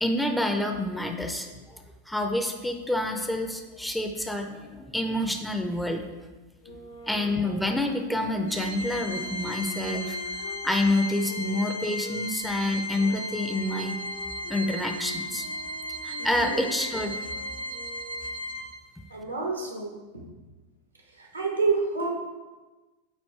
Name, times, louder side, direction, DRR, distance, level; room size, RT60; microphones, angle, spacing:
voice 1, 0.0-6.0 7.1-14.0 14.5-15.5 16.0-17.3, left 1 dB, 5° left, 4 dB, 0.5 m, -28 dB
sound 1, 6.6-12.2 12.9-18.5, left 2 dB, 75° left, 0.9 m, -44 dB
Organ, 8.5-19.1, left 1 dB, 55° right, 0.5 m, -35 dB
voice 2, 16.2-16.6 19.1-20.2 21.2-22.1, right 4 dB, 85° right, 0 dB, 1.2 m, -29 dB
8.6 x 2.9 x 4.4 m, 1.2 s
figure-of-eight pair, 90°, 0 cm